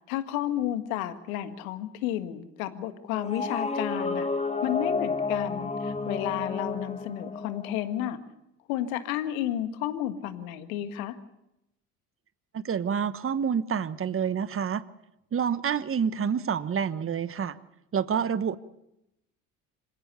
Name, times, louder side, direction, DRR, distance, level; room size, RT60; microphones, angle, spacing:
voice 1, 0.1-4.3 4.6-8.2 8.7-11.2, left 12 dB, 75° left, 10 dB, 1.7 m, -32 dB
sound 1, 3.1-8.1, left 4 dB, 15° left, 1.4 m, -31 dB
voice 2, 12.5-14.8 15.3-17.6 17.9-18.6, right 7 dB, 30° right, 14 dB, 1.2 m, -28 dB
26.0 x 16.5 x 7.0 m, 0.86 s
hypercardioid pair, 60°, 42 cm